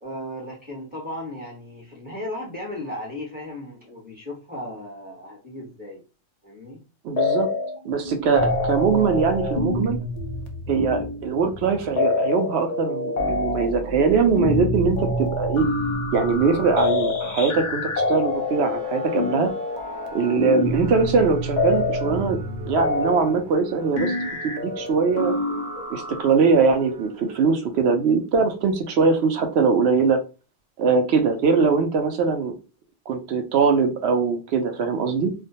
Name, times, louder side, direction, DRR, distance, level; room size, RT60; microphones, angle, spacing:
voice 1, 0.0-6.0 6.4-6.8, left 1 dB, 10° right, -3 dB, 0.9 m, -36 dB
voice 2, 7.0-7.5 7.8-10.0 10.7-15.6 16.1-19.5 20.1-22.4 22.7-24.1 24.4-25.3 25.9-30.2 30.8-32.5 33.1-35.3, right 5 dB, 70° right, 6 dB, 0.8 m, -21 dB
sound 1, 7.2-7.8 8.0-26.3, left 2 dB, 55° left, 0.5 m, -26 dB
sound 2, 18.0-28.2, right 4 dB, 30° right, 0.4 m, -41 dB
2.3 x 2.2 x 2.7 m, 0.32 s
omnidirectional pair, 1.2 m